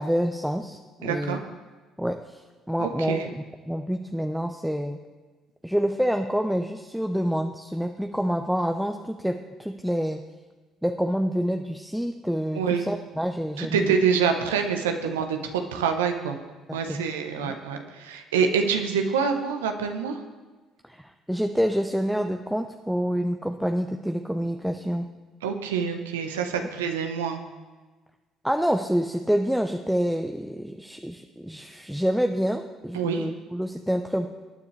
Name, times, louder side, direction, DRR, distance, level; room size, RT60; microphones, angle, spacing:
voice 1, 0.0-1.4 2.0-5.0 5.6-10.2 10.8-13.9 15.4-15.5 16.7-17.1 17.4-17.5 20.9-25.1 28.4-34.3, equal, ahead, 5 dB, 0.7 m, -27 dB
voice 2, 1.0-1.4 2.8-3.3 12.5-12.8 13.6-16.4 16.7-20.2 25.4-27.4 32.9-33.3, right 6 dB, 85° right, 5 dB, 1.0 m, -26 dB
19.5 x 9.6 x 3.3 m, 1.3 s
hypercardioid pair, 55°, 0 cm